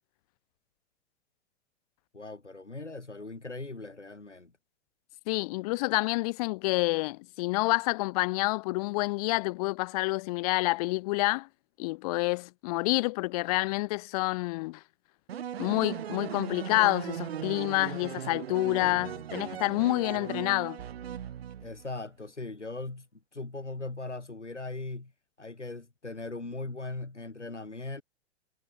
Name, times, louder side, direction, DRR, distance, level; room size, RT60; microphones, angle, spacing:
voice 1, 2.1-4.5 21.6-23.1 23.3-25.1 25.4-28.0, left 3 dB, 85° left, 1.6 m, -39 dB
voice 2, 5.3-11.5 11.8-14.8 15.6-20.8, left 23 dB, 35° left, 0.8 m, -28 dB
sound 1, 15.3-21.9, right 9 dB, 60° right, 1.9 m, -38 dB
figure-of-eight pair, 105°, 34 cm